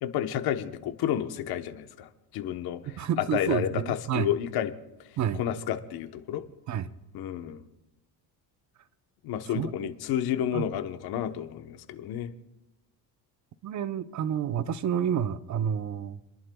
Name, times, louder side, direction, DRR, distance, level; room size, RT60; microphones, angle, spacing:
voice 1, 0.0-2.8 3.2-4.7 5.3-6.4 7.1-7.6 9.2-12.3, left 10 dB, 75° left, 1.1 m, -30 dB
voice 2, 2.8-4.3 5.2-5.4 6.7-6.9 9.5-9.9 10.5-10.7 13.6-16.2, right 9 dB, 50° right, 0.8 m, -29 dB
29.5 x 11.0 x 2.3 m
cardioid pair, 110°, 38 cm